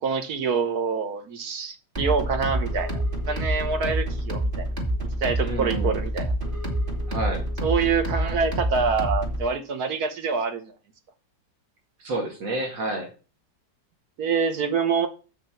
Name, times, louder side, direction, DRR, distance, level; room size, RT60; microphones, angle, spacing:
voice 1, 0.0-4.7 5.2-6.3 7.6-10.7 14.2-15.1, right 5 dB, 60° right, 7 dB, 1.6 m, -26 dB
sound 1, 2.0-9.5, right 1 dB, 30° right, 2.1 m, -27 dB
voice 2, 5.4-5.9 7.1-7.5 12.0-13.1, right 2 dB, 90° right, 2 dB, 2.6 m, -29 dB
7.2 x 5.8 x 5.8 m, 0.34 s
omnidirectional pair, 1.9 m